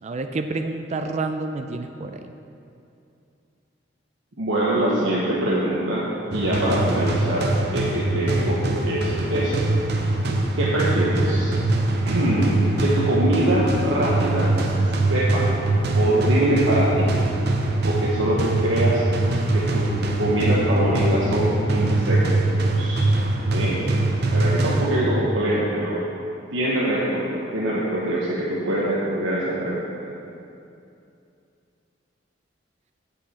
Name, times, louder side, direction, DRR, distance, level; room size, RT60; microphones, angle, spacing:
voice 1, 0.0-2.2, right 3 dB, 35° right, 7 dB, 0.4 m, -29 dB
voice 2, 4.4-9.5 10.6-11.5 12.0-14.5 14.8-15.4 15.9-17.1 17.8-19.0 19.5-19.9 20.2-22.3 22.7-23.1 23.5-23.8 24.3-26.0 26.5-30.1, right 1 dB, 90° right, -6 dB, 1.2 m, -23 dB
sound 1, 6.3-25.3, right 2 dB, 60° right, 0.8 m, -23 dB
8.5 x 8.1 x 4.3 m, 2.6 s
head